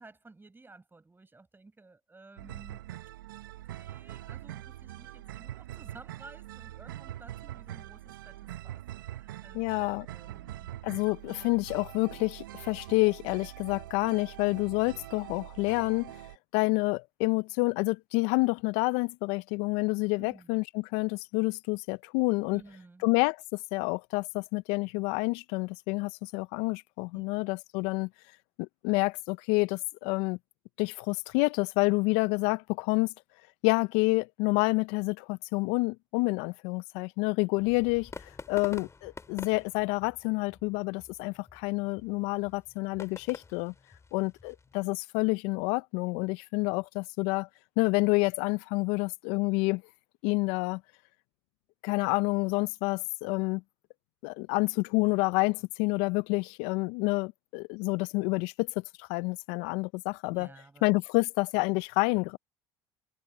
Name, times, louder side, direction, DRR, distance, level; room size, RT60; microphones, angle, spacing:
voice 1, 0.0-2.9 3.7-10.7 20.2-20.6 22.5-23.1 27.1-27.4 60.3-60.8, right 3 dB, 20° right, 7.8 m, -54 dB
sound 1, 2.4-16.4, right 14 dB, 85° right, 0.6 m, -44 dB
voice 2, 9.5-10.1 10.8-16.2 16.5-22.6 23.0-28.1 28.6-30.4 30.8-33.1 33.6-43.7 44.1-47.5 47.8-49.8 50.2-50.8 51.8-53.6 54.2-58.7 59.0-60.5 60.8-62.4, left 26 dB, 75° left, 0.5 m, -28 dB
sound 2, 37.6-44.9, left 4 dB, 25° left, 3.9 m, -48 dB
hypercardioid pair, 65°, 11 cm